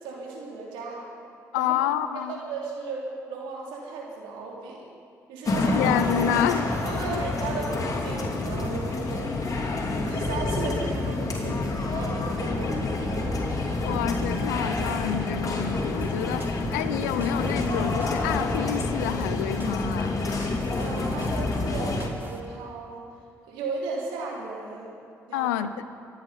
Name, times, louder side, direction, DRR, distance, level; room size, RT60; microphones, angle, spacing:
voice 1, 0.0-1.1 1.6-1.7 2.1-4.9 5.3-5.8 6.8-9.6 10.0-13.3 20.8-23.0 23.5-25.0 25.3-25.5, right 4 dB, 80° right, -2 dB, 2.9 m, -35 dB
voice 2, 1.5-2.3 5.7-6.7 7.1-7.2 13.8-20.2 25.3-25.7, left 10 dB, 85° left, 12 dB, 0.5 m, -28 dB
sound 1, 5.5-22.1, left 2 dB, 40° left, 2.8 m, -28 dB
sound 2, 16.0-22.4, right 2 dB, 25° right, 1.9 m, -41 dB
24.5 x 9.1 x 5.7 m, 2.4 s
hypercardioid pair, 45°, 9 cm